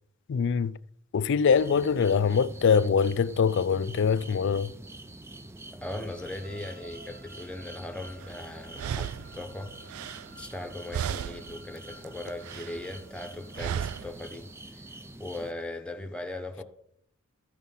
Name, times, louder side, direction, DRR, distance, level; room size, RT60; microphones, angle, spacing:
voice 1, 0.3-0.8 1.1-4.7, left 6 dB, 55° left, 0.4 m, -23 dB
sound 1, 1.5-15.5, right 2 dB, 10° right, 0.5 m, -46 dB
voice 2, 5.7-9.8 10.4-14.9 15.2-16.6, left 1 dB, 5° left, 1.0 m, -39 dB
sound 2, 6.1-13.9, right 1 dB, 45° right, 1.1 m, -54 dB
sound 3, 8.2-8.3 8.7-10.7 10.9-11.6 11.9-12.9 13.6-14.2, right 8 dB, 75° right, 0.3 m, -35 dB
14.0 x 6.3 x 5.5 m
head